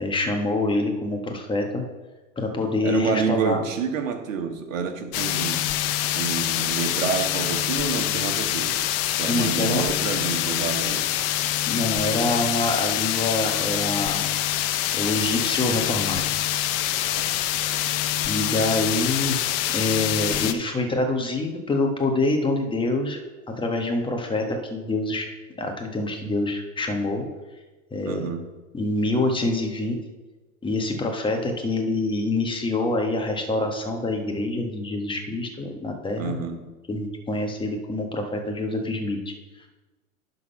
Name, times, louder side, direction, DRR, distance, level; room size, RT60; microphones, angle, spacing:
voice 1, 0.0-1.8 2.4-3.6 9.3-9.8 11.7-14.2 14.9-16.2 18.3-19.4 19.7-23.2 23.5-25.3 25.6-27.2 27.9-28.3 28.7-30.0 30.6-36.4 36.9-39.3, left 2 dB, 10° left, 3 dB, 1.4 m, -26 dB
voice 2, 2.8-5.6 6.1-8.8 9.2-11.1 17.2-17.3 28.0-28.4 36.2-36.7, right 6 dB, 70° right, 5 dB, 1.5 m, -28 dB
sound 1, 5.1-20.5, left 12 dB, 40° left, 0.7 m, -25 dB
11.0 x 4.0 x 5.8 m, 1.2 s
hypercardioid pair, 105°, 41 cm